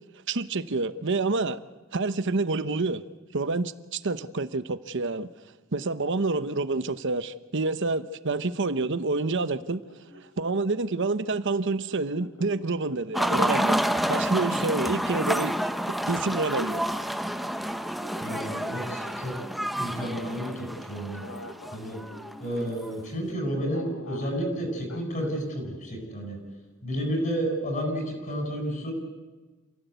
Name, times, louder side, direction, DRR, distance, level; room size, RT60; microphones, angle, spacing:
voice 1, 0.3-1.6 1.9-3.0 3.3-5.3 5.7-9.8 10.4-15.6 15.9-16.8, right 3 dB, 60° right, 1.0 m, -28 dB
sound 1, 8.6-11.1 11.9-14.8 15.7-20.5 21.2-23.0 23.7-24.5 24.9-25.4, left 1 dB, 85° left, 2.9 m, -46 dB
sound 2, 13.1-22.9, equal, ahead, 0.8 m, -29 dB
voice 2, 18.2-19.3 19.7-21.2 21.7-22.0 22.4-26.4 26.8-28.9, equal, 40° left, 7.4 m, -31 dB
27.5 x 16.5 x 8.2 m
head